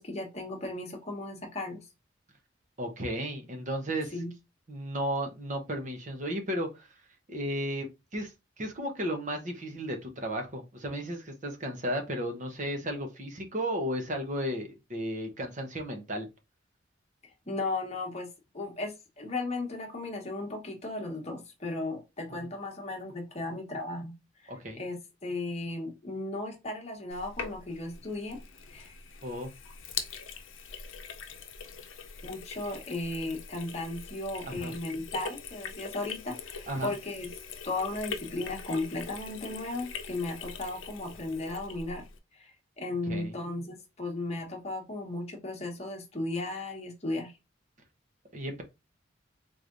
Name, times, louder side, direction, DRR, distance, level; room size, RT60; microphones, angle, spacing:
voice 1, 0.0-1.9 4.1-4.3 17.2-24.2 24.4-28.4 28.7-28.9 32.2-37.3 37.6-42.1 42.3-47.3, left 2 dB, 35° left, 1.1 m, -36 dB
voice 2, 2.8-4.1 4.7-6.9 7.3-8.3 8.6-16.3 24.5-24.8 29.2-29.5 34.5-34.8 36.7-36.9 43.1-43.3 48.3-48.6, equal, 40° right, 0.9 m, -34 dB
Sink (filling or washing), 27.1-42.2, left 6 dB, 90° left, 0.6 m, -42 dB
3.8 x 3.1 x 2.5 m
head